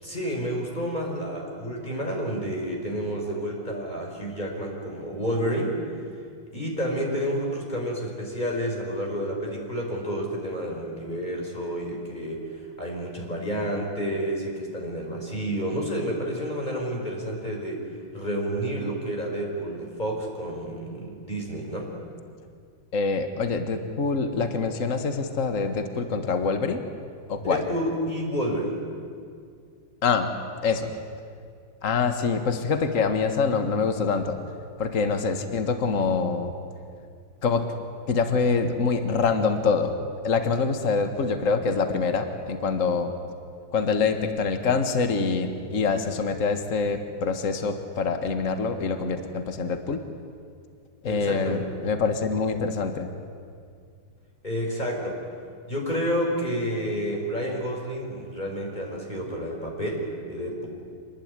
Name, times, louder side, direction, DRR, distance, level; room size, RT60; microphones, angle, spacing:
voice 1, 0.0-5.8 6.5-17.8 18.1-22.0 27.4-28.9 51.0-51.7 54.4-55.2 55.7-60.7, equal, 20° left, 0 dB, 5.2 m, -30 dB
voice 2, 22.9-26.8 27.3-27.6 30.0-30.3 30.6-30.9 31.8-34.4 34.8-36.5 37.4-37.6 38.1-39.9 40.2-43.1 43.7-50.0 51.0-53.1, left 4 dB, 45° left, 7 dB, 1.9 m, -25 dB
27.0 x 19.5 x 9.7 m, 2.2 s
omnidirectional pair, 2.1 m